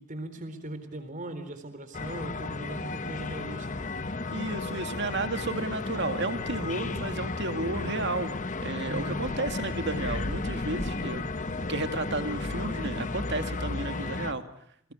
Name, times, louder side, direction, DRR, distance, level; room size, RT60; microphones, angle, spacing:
voice 1, 0.0-3.9 8.9-9.3, right 1 dB, 35° right, 9 dB, 3.9 m, -39 dB
sound 1, 1.9-14.3, left 3 dB, 35° left, 1.1 m, -33 dB
voice 2, 4.3-8.3 8.6-11.2 11.6-14.4, right 2 dB, 50° right, 8 dB, 2.3 m, -32 dB
29.0 x 21.5 x 8.5 m, 0.69 s
head